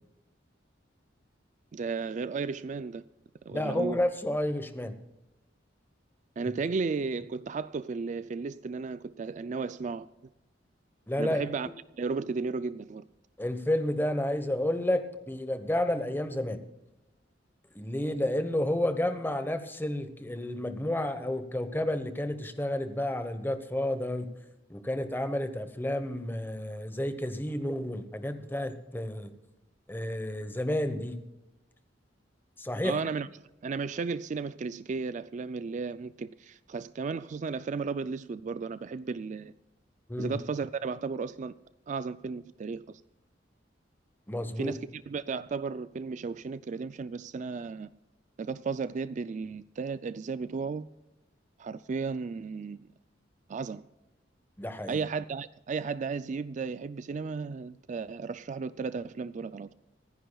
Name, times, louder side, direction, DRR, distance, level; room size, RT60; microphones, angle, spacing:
voice 1, 1.7-3.0 3.5-4.0 6.4-10.1 11.2-11.7 12.0-13.0 32.8-33.3 33.6-39.5 40.2-41.5 41.9-43.0 44.6-47.9 48.4-50.9 51.6-52.9 53.5-53.8 54.9-59.7, right 4 dB, 40° right, 0.3 m, -34 dB
voice 2, 3.5-4.9 11.1-11.4 13.4-16.6 17.7-24.3 24.7-29.3 29.9-31.1 32.6-33.0 40.1-40.4 44.3-44.7 54.6-55.0, left 1 dB, 10° left, 1.1 m, -31 dB
26.0 x 10.5 x 2.3 m
head